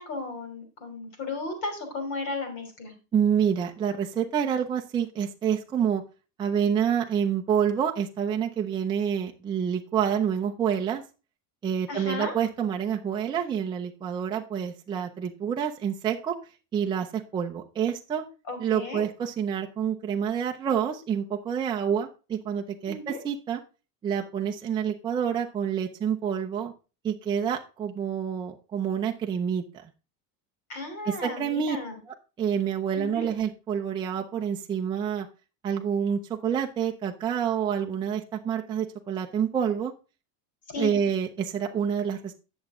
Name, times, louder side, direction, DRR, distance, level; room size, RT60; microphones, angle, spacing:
voice 1, 0.0-2.9 11.9-12.3 18.5-19.0 22.9-23.2 30.7-32.0 32.9-33.3 40.7-40.9, left 3 dB, 50° left, 6 dB, 3.2 m, -34 dB
voice 2, 3.1-6.0 6.4-11.0 11.6-16.4 16.7-18.2 18.6-23.6 24.0-26.7 27.0-29.6 31.0-31.8 32.1-35.3 35.6-39.9 40.8-42.3, right 8 dB, 10° right, 1 dB, 0.4 m, -28 dB
8.6 x 7.1 x 3.5 m, 0.31 s
cardioid pair, 170°, 39 cm